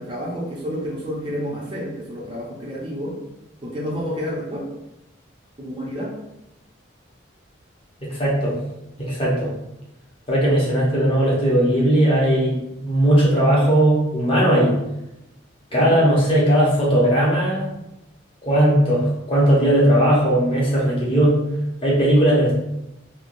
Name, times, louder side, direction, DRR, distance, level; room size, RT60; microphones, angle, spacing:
voice 1, 0.0-3.1 3.6-4.7 5.6-6.1 15.7-16.1, equal, 25° right, -5 dB, 0.5 m, -30 dB
voice 2, 8.0-8.5 9.0-9.5 10.3-12.6 12.8-14.7 15.7-17.7 18.4-21.4 21.8-22.5, right 1 dB, 25° left, -6 dB, 0.8 m, -18 dB
3.2 x 2.3 x 2.6 m, 0.89 s
head